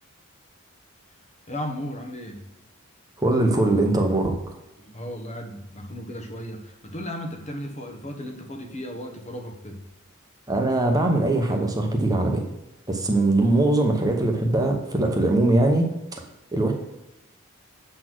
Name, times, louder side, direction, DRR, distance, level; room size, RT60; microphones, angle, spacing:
voice 1, 1.5-2.5 4.8-9.8, equal, 30° left, 4 dB, 1.2 m, -35 dB
voice 2, 3.2-4.3 10.5-12.4 12.9-16.7, right 2 dB, 15° right, 2 dB, 1.0 m, -21 dB
7.6 x 4.3 x 6.1 m, 0.92 s
head